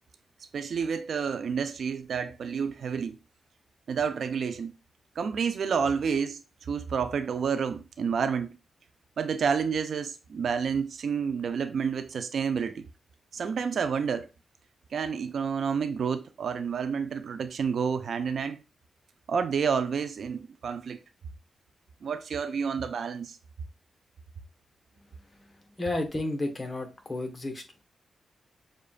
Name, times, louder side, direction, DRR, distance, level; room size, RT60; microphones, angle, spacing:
voice 1, 0.5-3.2 3.9-4.7 5.2-8.6 9.2-12.8 13.3-14.3 14.9-18.6 19.3-21.0 22.0-23.4, right 6 dB, 70° right, 0.5 m, -29 dB
voice 2, 25.0-27.8, left 2 dB, 30° left, 1.3 m, -33 dB
6.5 x 2.5 x 2.4 m
cardioid pair, 65°, 0 cm